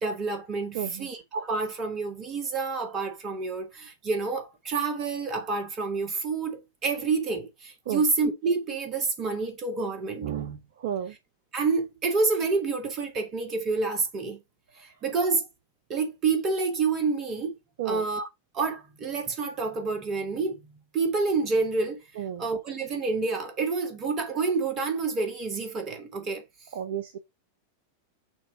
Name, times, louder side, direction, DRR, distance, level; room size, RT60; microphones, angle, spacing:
voice 1, 0.0-10.3 11.5-14.4 15.0-15.5 15.9-17.6 17.9-18.3 18.5-20.6 20.9-22.0 22.4-26.4, right 4 dB, 30° right, 2.0 m, -28 dB
voice 2, 0.7-1.1 7.9-8.0 10.2-11.2 17.8-18.1 22.2-22.4 26.7-27.2, right 10 dB, 55° right, 0.6 m, -32 dB
6.3 x 3.2 x 4.9 m
figure-of-eight pair, 90°, 0 cm